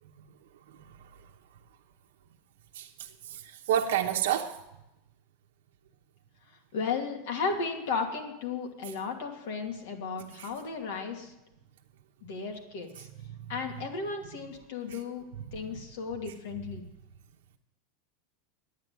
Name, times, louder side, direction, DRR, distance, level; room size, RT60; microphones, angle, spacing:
voice 1, 3.7-4.5, right 10 dB, 85° right, 0.9 m, -27 dB
voice 2, 6.7-11.3 12.2-13.1 13.5-15.3 15.5-16.9, left 5 dB, 75° left, 2.5 m, -34 dB
10.0 x 8.7 x 9.3 m
supercardioid pair, 145°, 0 cm